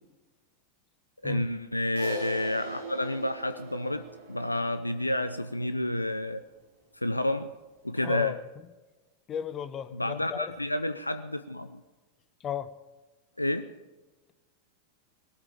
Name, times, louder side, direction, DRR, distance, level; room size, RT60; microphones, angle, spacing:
voice 1, 1.2-6.4 6.9-7.5 7.8-8.3 9.9-11.8 13.4-13.7, left 1 dB, 85° left, 11 dB, 0.5 m, -30 dB
Crash cymbal, 2.0-6.5, right 1 dB, 65° right, 5.4 m, -42 dB
voice 2, 8.0-8.7 9.3-10.5 12.4-12.7, left 9 dB, 30° left, 14 dB, 0.9 m, -35 dB
19.0 x 13.0 x 5.1 m, 1.2 s
figure-of-eight pair, 90°, 0 cm